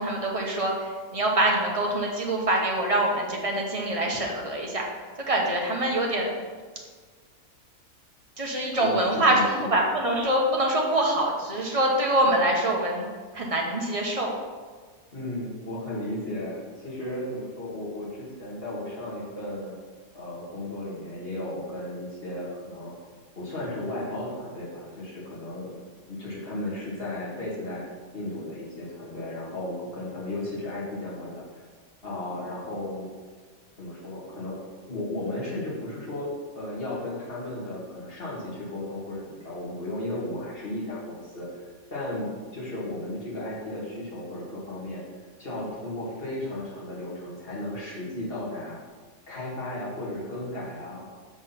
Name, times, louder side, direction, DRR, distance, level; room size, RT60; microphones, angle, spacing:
voice 1, 0.0-4.9 5.3-6.4 8.4-13.1 13.3-14.3, right 1 dB, 25° right, -1 dB, 1.1 m, -25 dB
voice 2, 8.8-9.7 15.1-19.8 20.1-22.9 23.4-25.7 26.1-27.8 28.1-31.4 32.0-33.1 33.8-34.6 34.9-36.3 36.5-41.5 41.9-45.0 45.4-48.8 49.3-51.1, left 1 dB, 40° left, -6 dB, 2.3 m, -34 dB
6.2 x 4.9 x 5.7 m, 1.5 s
omnidirectional pair, 1.5 m